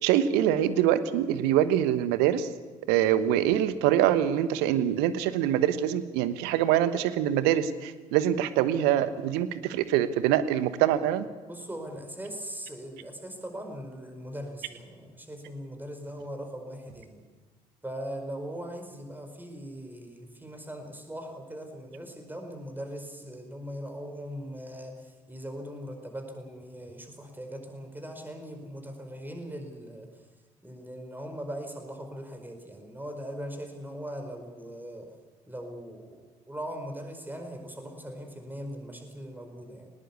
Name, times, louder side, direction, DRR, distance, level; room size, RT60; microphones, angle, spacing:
voice 1, 0.0-2.5 2.9-11.3, right 11 dB, 60° right, 14 dB, 1.2 m, -24 dB
voice 2, 11.4-17.2 17.8-30.1 30.6-35.1 35.5-39.9, equal, 10° right, 5 dB, 4.8 m, -40 dB
20.0 x 19.5 x 8.4 m, 1.4 s
figure-of-eight pair, 50°, 19 cm